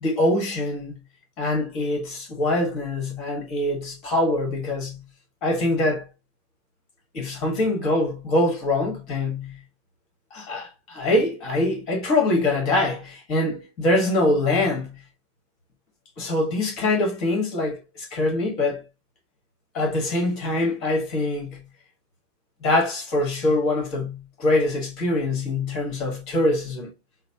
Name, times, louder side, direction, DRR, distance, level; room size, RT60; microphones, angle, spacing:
voice 1, 0.0-1.0 1.4-5.0 5.4-6.1 7.1-9.6 10.3-14.9 16.2-18.8 19.7-21.6 22.6-26.9, left 2 dB, 35° left, 1.6 m, -24 dB
3.9 x 2.0 x 2.9 m
figure-of-eight pair, 90°, 0 cm